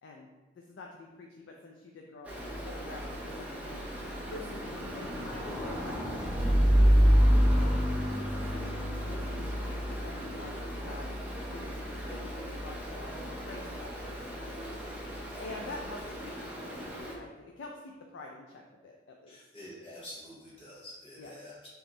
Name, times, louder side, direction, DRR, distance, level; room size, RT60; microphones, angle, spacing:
voice 1, 0.5-2.3 2.6-8.8 9.1-11.2 11.5-11.8 12.1-19.4 21.2-21.3, left 2 dB, 85° left, 1 dB, 0.4 m, -47 dB
Stream, 2.3-17.1, equal, 5° right, 0.5 m, -29 dB
voice 2, 19.3-21.7, left 1 dB, 30° left, -7 dB, 1.3 m, -47 dB
3.6 x 2.9 x 3.8 m, 1.2 s
head